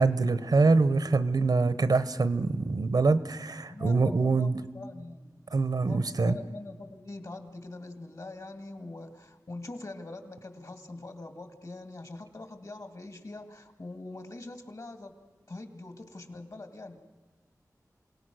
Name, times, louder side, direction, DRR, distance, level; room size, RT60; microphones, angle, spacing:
voice 1, 0.0-4.6 5.5-6.3, right 3 dB, 90° right, 13 dB, 0.9 m, -24 dB
voice 2, 3.7-5.4 5.8-15.1 15.5-17.0, left 2 dB, 65° left, 7 dB, 2.4 m, -43 dB
27.5 x 18.0 x 6.3 m, 1.3 s
wide cardioid pair, 45°, 7 cm